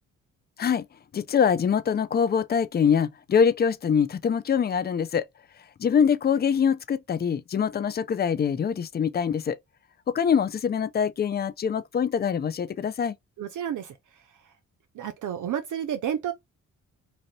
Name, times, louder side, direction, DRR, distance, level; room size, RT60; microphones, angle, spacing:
voice 1, 1.1-5.3 5.8-9.6 10.1-13.2, left 7 dB, 30° left, 0.4 m, -24 dB
voice 2, 13.4-14.5 14.9-16.3, right 9 dB, 55° right, 0.6 m, -31 dB
2.7 x 2.5 x 3.0 m
supercardioid pair, 50°, 36 cm